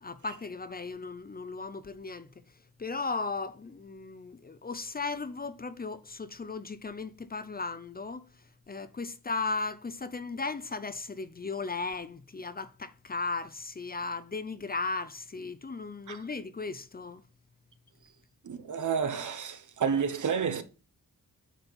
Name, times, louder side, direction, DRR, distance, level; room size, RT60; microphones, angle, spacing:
voice 1, 0.0-2.3 2.8-8.2 8.7-17.2, left 4 dB, 30° left, 0.5 m, -36 dB
voice 2, 18.4-20.6, right 6 dB, 65° right, 1.0 m, -30 dB
9.2 x 4.4 x 5.6 m
wide cardioid pair, 150°, 33 cm